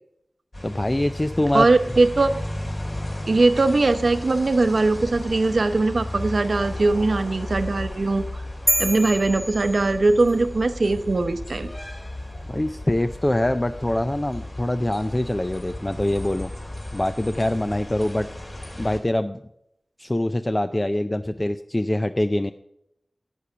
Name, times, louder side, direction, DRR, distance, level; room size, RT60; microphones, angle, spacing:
sound 1, 0.5-19.0, left 1 dB, 40° left, 3.0 m, -35 dB
voice 1, 0.6-1.7 12.5-16.5 16.9-18.3 18.8-19.4 20.0-22.5, left 1 dB, 25° left, 9 dB, 0.4 m, -24 dB
voice 2, 1.5-2.4 3.3-8.4 8.8-11.7, right 3 dB, 65° right, 10 dB, 0.8 m, -20 dB
sound 2, 8.7-10.4, right 1 dB, 15° right, 1.2 m, -27 dB
11.0 x 8.5 x 5.7 m, 0.80 s
wide cardioid pair, 70°, 0 cm